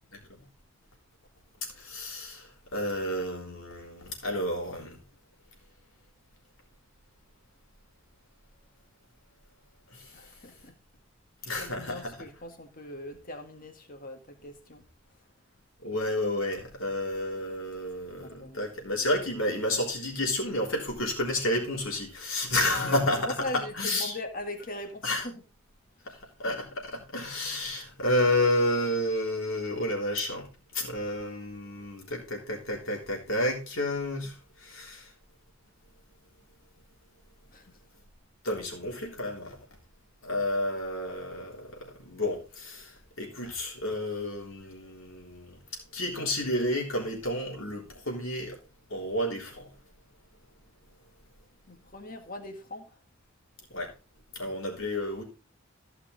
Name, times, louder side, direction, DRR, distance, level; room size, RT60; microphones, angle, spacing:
voice 1, 0.1-0.4 1.8-5.0 9.9-10.1 11.4-12.2 15.8-23.3 23.8-24.1 25.0-25.2 26.1-35.1 38.4-39.6 40.2-48.6 48.9-49.7 53.7-53.9 54.3-55.2, left 1 dB, 65° left, 3.6 m, -31 dB
voice 2, 10.1-10.8 11.4-15.3 18.0-18.7 22.7-25.5 26.0-26.2 26.9-27.0 37.5-37.8 51.7-53.0, left 1 dB, 40° left, 1.8 m, -41 dB
14.5 x 5.8 x 4.0 m
head